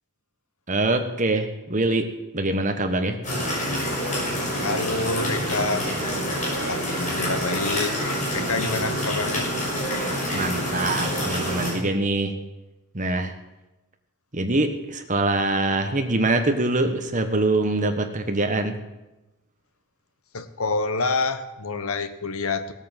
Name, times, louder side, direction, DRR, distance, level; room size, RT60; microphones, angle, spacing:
voice 1, 0.7-2.1 2.3-3.2 8.5-8.7 10.3-12.3 12.9-13.3 14.3-18.8, right 2 dB, 35° right, 6 dB, 1.3 m, -24 dB
sound 1, 3.2-11.7, equal, 35° left, 5.7 m, -27 dB
voice 2, 4.6-5.9 6.7-8.0 8.3-9.5 20.3-22.7, left 3 dB, 75° left, 11 dB, 1.1 m, -27 dB
17.0 x 8.8 x 7.4 m, 1.0 s
head